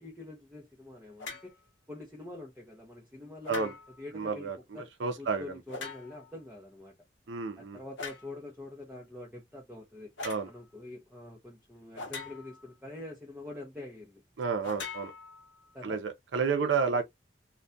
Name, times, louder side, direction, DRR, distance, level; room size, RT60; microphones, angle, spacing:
voice 1, 0.0-1.6 1.9-6.9 7.6-10.1 10.4-14.2 15.7-16.0 16.4-17.0, left 2 dB, 10° right, 0.6 m, -45 dB
sound 1, 1.2-1.5 3.4-4.0 5.7-6.3 8.0-8.3 10.2-10.5 11.9-12.7 14.6-15.7, left 4 dB, 80° left, 0.7 m, -42 dB
voice 2, 4.1-5.5 7.3-7.8 10.2-10.5 14.4-15.1 15.8-17.0, right 5 dB, 75° right, 0.5 m, -31 dB
2.3 x 2.2 x 2.6 m
head